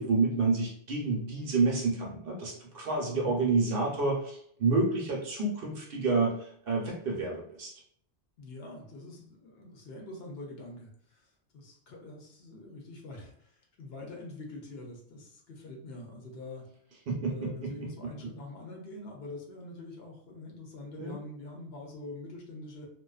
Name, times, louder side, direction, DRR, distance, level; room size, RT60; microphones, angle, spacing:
voice 1, 0.0-6.3 6.7-7.7 17.1-17.9 21.0-21.1, right 3 dB, 60° right, -2 dB, 0.8 m, -29 dB
voice 2, 8.4-16.6 17.2-22.9, left 2 dB, 65° left, 0 dB, 0.8 m, -45 dB
2.4 x 2.2 x 2.3 m, 0.63 s
omnidirectional pair, 1.2 m